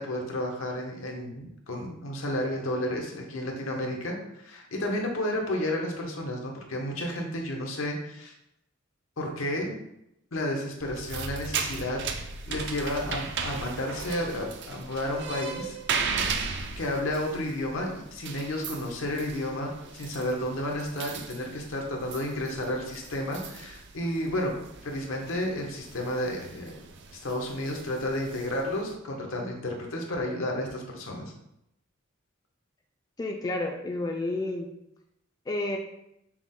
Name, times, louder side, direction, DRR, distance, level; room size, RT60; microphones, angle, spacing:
voice 1, 0.0-4.2 4.4-8.3 9.2-9.7 10.3-12.0 12.5-15.8 16.8-24.6 24.8-26.8 27.1-31.3, left 1 dB, 90° left, 1 dB, 0.9 m, -31 dB
sound 1, 10.8-28.9, right 5 dB, 60° right, 0.4 m, -37 dB
voice 2, 33.2-34.7 35.5-35.8, left 2 dB, 20° left, 2 dB, 0.3 m, -30 dB
5.9 x 2.1 x 3.7 m, 0.82 s
head